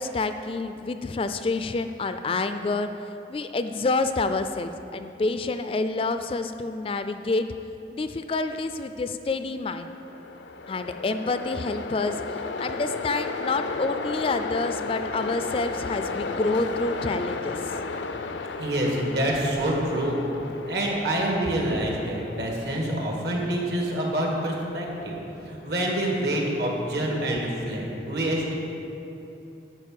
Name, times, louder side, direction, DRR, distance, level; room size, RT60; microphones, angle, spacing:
voice 1, 0.0-2.9 3.3-7.5 7.9-9.9 10.7-17.7 27.3-27.4, left 3 dB, 30° left, 9 dB, 0.3 m, -28 dB
Train, 9.8-27.0, left 4 dB, 85° left, 0.5 m, -35 dB
voice 2, 18.6-20.2 20.6-25.1 25.4-28.5, right 1 dB, 70° right, -1 dB, 1.9 m, -26 dB
11.0 x 4.9 x 7.7 m, 3.0 s
head